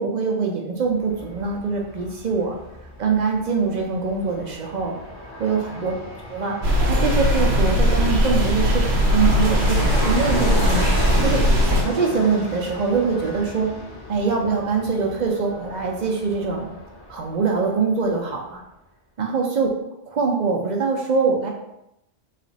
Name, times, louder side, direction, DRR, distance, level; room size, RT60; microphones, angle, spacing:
voice 1, 0.0-2.6 3.0-4.9 5.4-5.9 6.3-6.6 6.9-10.9 11.2-13.7 14.1-16.7 17.1-18.6 19.2-19.7 20.1-21.5, right 5 dB, 50° right, 0 dB, 0.6 m, -23 dB
Fixed-wing aircraft airplane, 0.8-17.8 18.1-18.2, left 1 dB, 25° left, 1.1 m, -33 dB
sound 1, 6.6-11.8, equal, 70° right, 1.0 m, -19 dB
3.2 x 2.5 x 3.9 m, 0.85 s
omnidirectional pair, 1.1 m